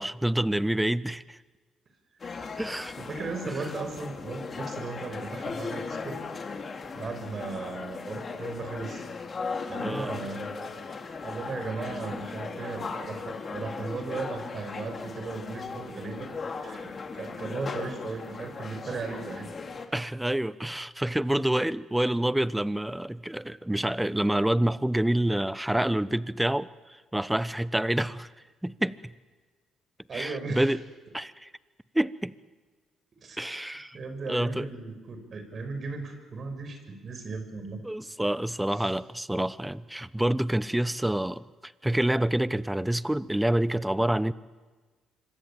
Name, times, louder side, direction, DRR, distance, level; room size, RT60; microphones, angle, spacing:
voice 1, 0.0-1.4 2.6-2.9 9.8-10.1 19.9-28.3 28.6-29.0 30.1-30.8 31.1-31.5 31.9-32.3 33.4-34.0 34.3-34.7 37.8-44.3, right 1 dB, 10° right, 18 dB, 1.0 m, -27 dB
sound 1, 2.2-19.9, left 4 dB, 45° left, 3.2 m, -37 dB
voice 2, 2.2-2.6 3.0-6.2 6.9-9.1 9.7-10.8 11.2-16.3 16.6-19.5 30.1-30.8 33.2-33.4 33.9-37.8 38.7-38.9, right 4 dB, 50° right, 7 dB, 6.4 m, -37 dB
26.0 x 23.5 x 8.9 m, 1.3 s
hypercardioid pair, 55°, 0 cm